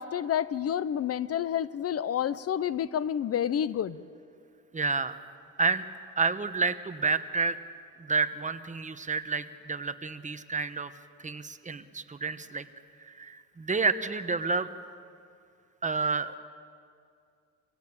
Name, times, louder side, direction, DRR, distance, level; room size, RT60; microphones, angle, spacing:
voice 1, 0.0-4.0, left 9 dB, 50° left, 17 dB, 0.6 m, -29 dB
voice 2, 4.7-5.2 5.6-5.8 6.2-7.6 8.0-10.9 11.2-12.7 13.0-14.7 15.8-16.4, right 4 dB, 25° right, 10 dB, 1.1 m, -29 dB
26.0 x 16.5 x 8.7 m, 2.4 s
cardioid pair, 90°, 30 cm